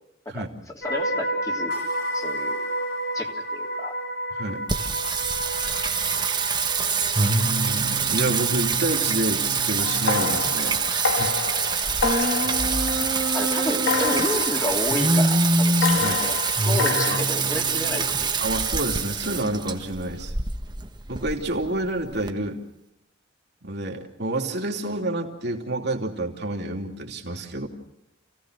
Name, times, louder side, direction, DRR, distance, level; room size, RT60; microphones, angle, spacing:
voice 1, 0.7-1.7 2.1-2.6 3.1-3.9 13.3-16.4 16.7-18.3, left 1 dB, 20° left, 1 dB, 3.1 m, -31 dB
sound 1, 0.8-10.9 11.2-11.5, equal, 65° left, 4.6 m, -32 dB
Singing, 4.7-22.3, right 4 dB, 25° right, 1.4 m, -24 dB
voice 2, 7.2-11.3 16.0-16.2 17.1-17.3 18.4-20.3 21.1-22.6 23.6-27.7, right 1 dB, 60° right, 2 dB, 2.9 m, -29 dB
sound 2, 9.8-13.5 13.8-15.3 15.8-17.2, left 5 dB, 85° left, 2.0 m, -28 dB
28.5 x 17.5 x 6.5 m, 0.85 s
head